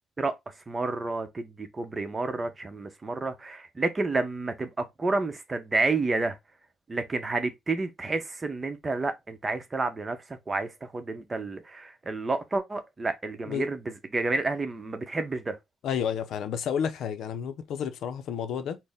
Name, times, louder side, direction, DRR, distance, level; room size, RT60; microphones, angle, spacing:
voice 1, 0.7-6.4 6.9-15.6, right 3 dB, 25° right, 0.7 m, -30 dB
voice 2, 15.8-18.8, left 8 dB, 75° left, 0.5 m, -31 dB
4.2 x 2.1 x 3.5 m
cardioid pair, 90°, 0 cm